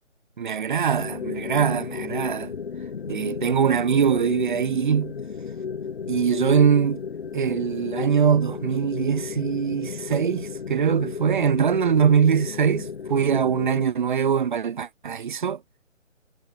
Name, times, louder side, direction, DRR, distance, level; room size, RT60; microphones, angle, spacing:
voice 1, 0.4-2.5 3.1-5.1 6.1-7.0 7.3-15.6, right 7 dB, 40° right, 1.9 m, -22 dB
sound 1, 0.9-13.9, left 6 dB, 50° left, 2.1 m, -33 dB
figure-of-eight pair, 150°, 39 cm